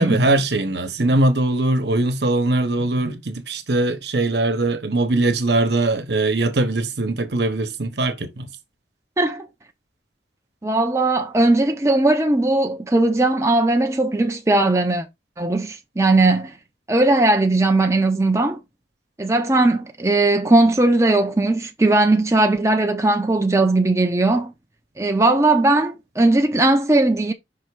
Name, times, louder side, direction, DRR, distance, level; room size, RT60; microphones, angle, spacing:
voice 1, 0.0-8.5, right 2 dB, 70° right, 1.1 m, -21 dB
voice 2, 10.6-15.1 15.4-16.5 16.9-18.6 19.2-24.5 25.0-27.3, right 2 dB, 15° right, 0.6 m, -18 dB
5.7 x 3.4 x 4.8 m
head